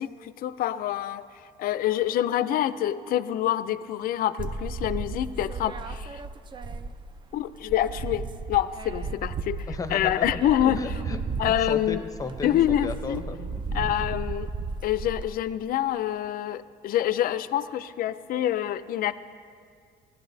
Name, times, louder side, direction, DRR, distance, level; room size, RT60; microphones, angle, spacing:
voice 1, 0.0-6.2 7.3-10.8 11.4-12.0 12.4-13.2 13.7-14.5 14.8-19.1, left 12 dB, 60° left, 14 dB, 0.4 m, -26 dB
sound 1, 4.4-7.2 7.5-15.3, right 3 dB, 30° right, 0.4 m, -34 dB
voice 2, 9.7-10.3 10.6-13.7, left 3 dB, 20° left, 9 dB, 0.7 m, -35 dB
17.0 x 11.0 x 2.7 m, 2.2 s
cardioid pair, 110°, 17 cm